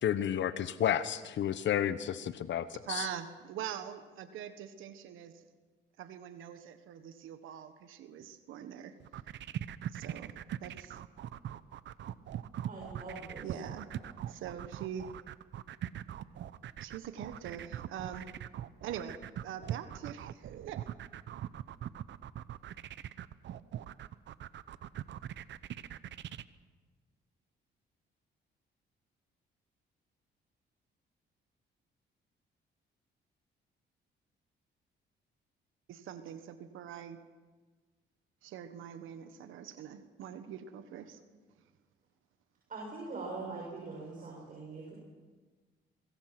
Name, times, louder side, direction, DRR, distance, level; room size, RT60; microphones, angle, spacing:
voice 1, 0.0-3.1, left 10 dB, 65° left, 14 dB, 1.0 m, -31 dB
voice 2, 2.8-5.4 6.0-8.9 9.9-10.3 10.6-11.0 13.4-13.9 14.3-15.1 16.8-18.3 18.8-20.8 35.9-37.2 38.4-41.2 44.1-44.4, right 9 dB, 85° right, 10 dB, 1.4 m, -43 dB
sound 1, 9.0-26.4, right 11 dB, 65° right, 0.8 m, -41 dB
voice 3, 12.7-13.5 13.9-14.1 42.7-44.9, right 3 dB, 45° right, -2 dB, 7.0 m, -43 dB
24.0 x 21.5 x 6.0 m, 1.4 s
cardioid pair, 90°, 20 cm